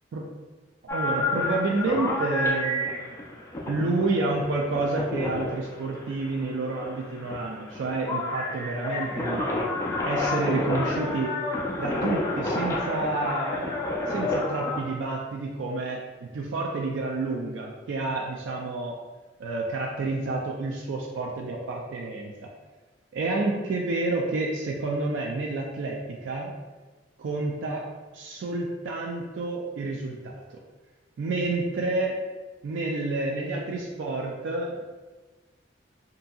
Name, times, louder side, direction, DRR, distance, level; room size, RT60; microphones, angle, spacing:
voice 1, 0.8-3.2 3.7-9.4 10.1-11.4 11.8-13.6 14.1-16.0 16.3-19.0 19.4-22.5 23.1-26.5 27.2-27.9 28.1-30.6 31.2-32.2 32.6-34.8, right 3 dB, 70° right, -1 dB, 0.3 m, -29 dB
sound 1, 0.9-14.8, left 2 dB, 15° left, 0.3 m, -30 dB
2.7 x 2.6 x 2.3 m, 1.3 s
head